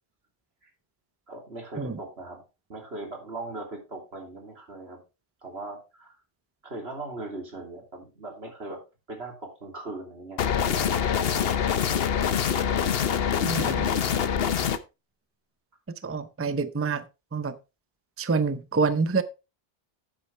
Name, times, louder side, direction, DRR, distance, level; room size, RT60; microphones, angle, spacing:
voice 1, 1.3-2.4 2.7-5.0 5.4-6.2 6.6-8.8 9.1-11.8, right 2 dB, 85° right, 3.1 m, -39 dB
sound 1, 10.4-14.8, left 8 dB, 70° left, 1.0 m, -25 dB
voice 2, 13.4-13.9 16.0-17.0 17.3-17.5 18.2-19.2, right 4 dB, 15° right, 0.5 m, -26 dB
9.6 x 8.6 x 3.3 m
omnidirectional pair, 1.0 m